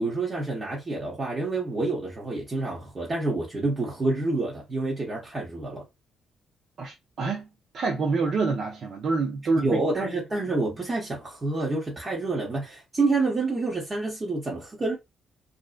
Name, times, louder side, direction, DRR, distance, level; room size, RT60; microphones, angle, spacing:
voice 1, 0.0-5.8 9.5-15.0, right 3 dB, 30° right, 0.9 m, -28 dB
voice 2, 6.8-7.5 7.7-10.0, right 4 dB, 60° right, 0.6 m, -27 dB
2.6 x 2.1 x 2.4 m
cardioid pair, 90°, 0 cm